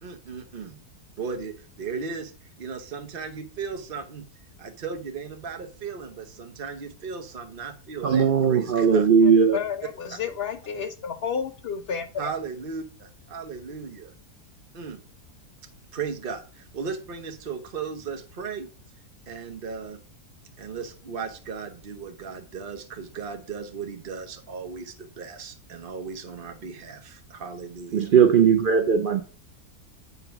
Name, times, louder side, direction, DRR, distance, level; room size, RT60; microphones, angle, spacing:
voice 1, 0.0-0.8 1.2-2.3 2.6-4.2 4.6-9.0 10.1-10.2 12.2-14.1 14.7-15.0 15.9-18.7 19.3-20.0 20.6-27.9, right 5 dB, 40° right, 1.0 m, -36 dB
voice 2, 8.0-9.6 27.9-29.2, right 6 dB, 85° right, 0.4 m, -18 dB
voice 3, 9.5-12.0, left 7 dB, 80° left, 0.5 m, -31 dB
8.3 x 3.9 x 5.8 m
omnidirectional pair, 1.7 m